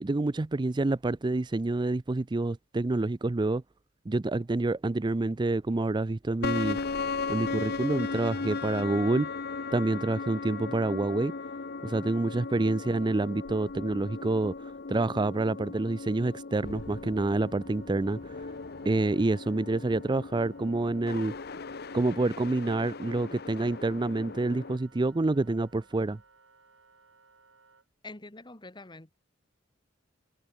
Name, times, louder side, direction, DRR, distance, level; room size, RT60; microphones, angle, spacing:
voice 1, 0.0-3.6 4.1-6.8 7.3-9.3 9.7-11.3 11.8-18.4 18.8-21.3 21.9-26.2, right 2 dB, 25° right, 0.5 m, -28 dB
sound 1, 6.4-24.8, left 4 dB, 55° left, 0.8 m, -37 dB
Wind instrument woodwind instrument, 16.6-27.9, right 4 dB, 80° right, 6.7 m, -61 dB
voice 2, 28.0-29.1, left 2 dB, 25° left, 1.7 m, -45 dB
head